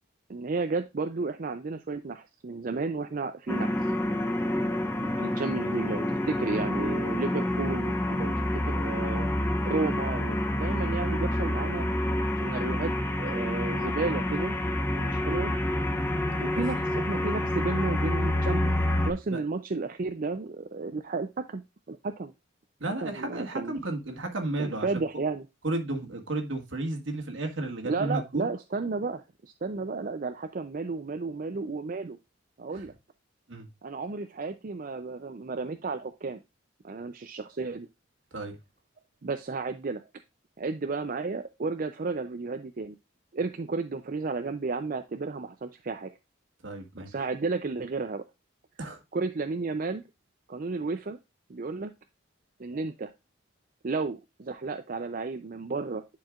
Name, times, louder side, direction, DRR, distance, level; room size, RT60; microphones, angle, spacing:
voice 1, 0.3-3.8 5.0-9.3 9.6-11.9 12.4-12.9 13.2-14.5 15.0-15.5 16.4-18.7 19.1-21.6 21.9-22.3 23.0-23.7 24.6-25.4 27.8-32.2 32.6-32.9 33.8-36.4 36.8-37.9 39.2-40.0 40.6-43.0 43.3-46.1 47.0-48.2 49.1-50.0 50.5-51.2 51.5-51.9 52.6-53.1 53.8-56.0, right 3 dB, 45° right, 0.5 m, -32 dB
sound 1, 3.5-19.1, left 1 dB, 10° left, 0.9 m, -28 dB
voice 2, 22.8-24.9 25.6-28.5 32.7-32.9 33.5-33.7 38.3-38.6 46.6-47.1 48.8-49.0, right 2 dB, 75° right, 1.8 m, -33 dB
10.5 x 4.7 x 2.4 m
head